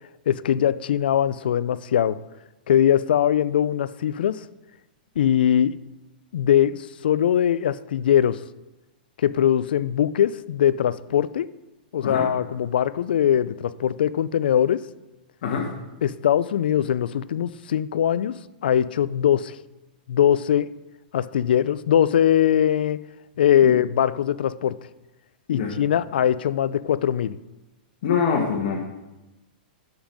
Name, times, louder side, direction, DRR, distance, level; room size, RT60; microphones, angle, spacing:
voice 1, 0.3-2.2 2.7-4.4 5.2-5.7 6.3-8.4 9.2-11.5 11.9-14.8 16.0-19.6 20.1-20.7 21.1-23.0 23.4-24.8 25.5-27.4, left 10 dB, 80° left, 17 dB, 0.4 m, -21 dB
voice 2, 28.0-28.8, left 6 dB, 60° left, -1 dB, 1.4 m, -24 dB
7.1 x 5.4 x 5.2 m, 1.0 s
hypercardioid pair, 135°, 5 cm